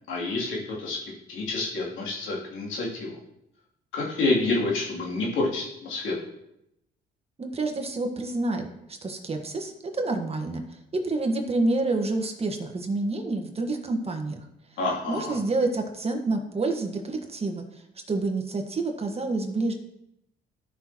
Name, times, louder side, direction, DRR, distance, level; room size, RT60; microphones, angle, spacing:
voice 1, 0.1-3.2 3.9-6.2 14.8-15.4, left 2 dB, 80° left, -4 dB, 3.1 m, -28 dB
voice 2, 7.4-10.6 11.0-14.4 15.1-17.6 18.1-19.7, right 2 dB, 30° right, 4 dB, 1.5 m, -28 dB
14.0 x 5.9 x 3.0 m, 0.81 s
cardioid pair, 90°, 20 cm